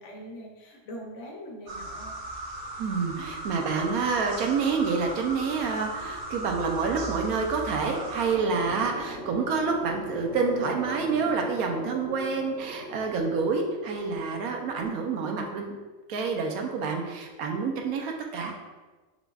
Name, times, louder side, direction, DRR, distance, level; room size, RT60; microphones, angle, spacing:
voice 1, 0.0-2.1, equal, 60° left, -1 dB, 1.1 m, -42 dB
sound 1, 1.7-8.4, right 2 dB, 60° right, 0.9 m, -37 dB
voice 2, 2.8-15.7 16.1-18.6, right 5 dB, 85° right, 2 dB, 1.1 m, -28 dB
sound 2, 7.7-14.7, equal, 20° right, 0.8 m, -40 dB
5.9 x 3.4 x 2.4 m, 1.3 s
omnidirectional pair, 1.5 m